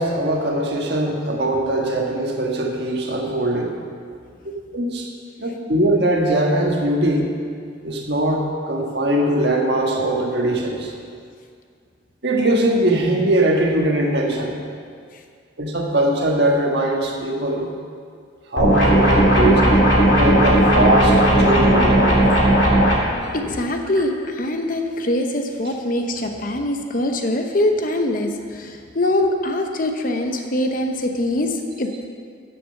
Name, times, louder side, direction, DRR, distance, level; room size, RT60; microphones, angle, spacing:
voice 1, 0.0-3.7 4.7-5.1 5.4-7.3 7.8-10.9 12.2-14.6 15.6-17.7 18.5-19.6 20.2-22.2 24.0-24.1, right 1 dB, 55° right, 0 dB, 1.5 m, -21 dB
sound 1, 18.6-23.0, right 1 dB, 75° left, 2.5 m, -15 dB
voice 2, 19.4-19.9 23.3-28.3 28.6-31.5 31.8-32.1, left 1 dB, 45° left, 4 dB, 0.9 m, -23 dB
9.8 x 8.0 x 6.6 m, 2.2 s
head